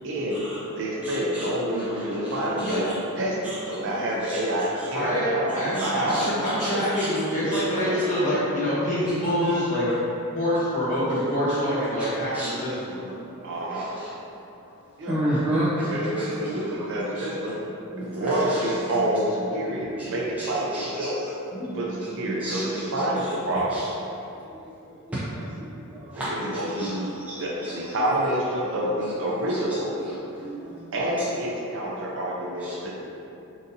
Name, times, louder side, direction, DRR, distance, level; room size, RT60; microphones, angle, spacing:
voice 1, 0.0-6.2 6.7-6.8 7.8-8.0 13.4-13.9 15.0-15.2 15.5-17.6 18.0-21.2 21.7-23.9 26.2-27.1 27.4-29.9 30.9-33.0, right 1 dB, 60° right, -4 dB, 0.5 m, -28 dB
voice 2, 1.0-1.5 1.8-2.7 3.4-4.4 4.8-4.9 5.7-6.2 6.6-6.7 6.9-7.1 7.5-7.6 9.4-9.6 12.3-12.5 12.9-13.0 13.7-14.1 15.1-15.9 16.2-17.3 17.9-18.7 20.0-20.1 20.4-20.5 20.7-21.1 21.5-21.9 22.3-22.8 23.1-23.2 23.7-23.8 25.1-25.4 25.9-26.3 26.8-27.4 29.5-29.6 30.4-30.8 32.6-32.7, right 1 dB, 5° right, -13 dB, 0.4 m, -32 dB
voice 3, 4.9-5.3 5.5-9.9 10.3-13.0, equal, 35° left, -9 dB, 0.9 m, -25 dB
3.7 x 2.6 x 2.6 m, 2.8 s
head